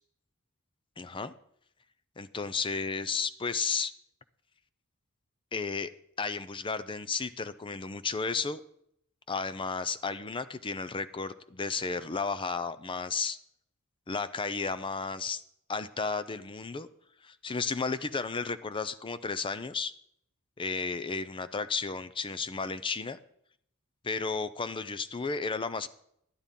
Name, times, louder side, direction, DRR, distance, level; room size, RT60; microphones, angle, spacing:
voice 1, 1.0-1.3 2.2-3.9 5.5-5.9 6.2-8.6 9.3-13.4 14.1-15.4 15.7-16.9 17.2-19.9 20.6-23.2 24.0-25.9, left 4 dB, 25° left, 14 dB, 0.5 m, -33 dB
11.5 x 9.6 x 5.3 m, 0.71 s
head